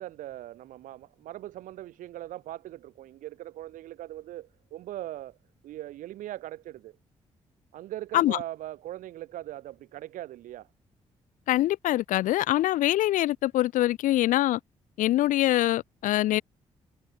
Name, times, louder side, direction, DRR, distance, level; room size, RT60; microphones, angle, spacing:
voice 1, 0.0-5.4 5.6-7.0 7.7-10.7, right 14 dB, 80° right, 1.5 m, -40 dB
voice 2, 11.5-14.6 15.0-16.4, left 15 dB, 75° left, 0.5 m, -24 dB
supercardioid pair, 50°, 13 cm